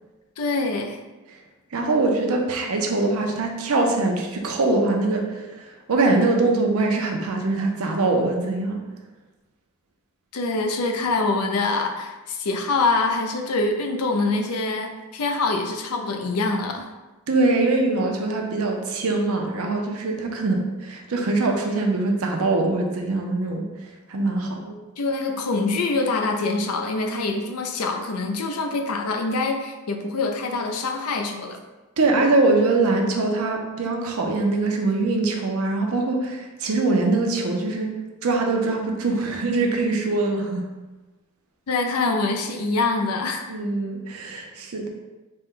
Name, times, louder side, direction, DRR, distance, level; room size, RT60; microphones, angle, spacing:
voice 1, 0.4-1.0 10.3-16.9 25.0-31.6 41.7-43.4, left 3 dB, 80° left, 4 dB, 0.5 m, -25 dB
voice 2, 1.7-8.8 17.3-23.6 24.1-24.7 32.0-37.9 38.2-40.6 43.5-44.9, right 3 dB, 70° right, 2 dB, 0.6 m, -23 dB
4.2 x 2.2 x 3.7 m, 1.2 s
head